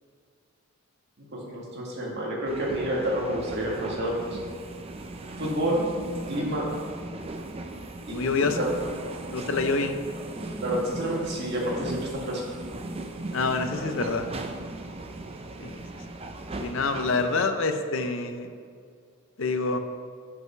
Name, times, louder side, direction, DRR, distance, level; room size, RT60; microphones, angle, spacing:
voice 1, 1.3-4.4 5.4-5.9 6.3-6.7 8.1-8.7 10.6-12.4, right 1 dB, 50° right, -4 dB, 1.9 m, -29 dB
sound 1, 2.5-17.5, right 2 dB, 25° right, 0.5 m, -37 dB
voice 2, 8.1-8.7 9.3-10.0 13.3-14.3 15.6-16.0 16.6-18.5 19.4-19.8, left 3 dB, 60° left, 7 dB, 0.6 m, -27 dB
6.2 x 5.5 x 5.7 m, 2.1 s
head